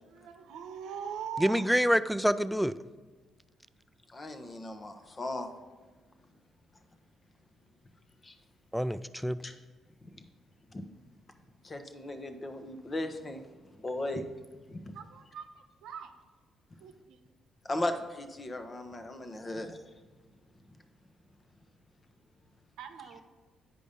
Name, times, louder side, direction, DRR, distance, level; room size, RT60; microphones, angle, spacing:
voice 1, 0.1-1.6 9.5-9.6 14.9-16.1 16.8-17.2 22.8-23.2, right 7 dB, 75° right, 7 dB, 0.8 m, -42 dB
voice 2, 1.4-2.7 8.7-9.4, equal, ahead, 14 dB, 0.4 m, -26 dB
voice 3, 4.1-5.5 8.2-8.3 9.4-9.5 10.0-10.1 10.7-10.8 11.6-13.5 13.8-14.3 14.7-15.0 17.6-19.8, left 1 dB, 35° left, 7 dB, 1.0 m, -37 dB
8.5 x 5.2 x 5.1 m, 1.3 s
supercardioid pair, 55°, 0 cm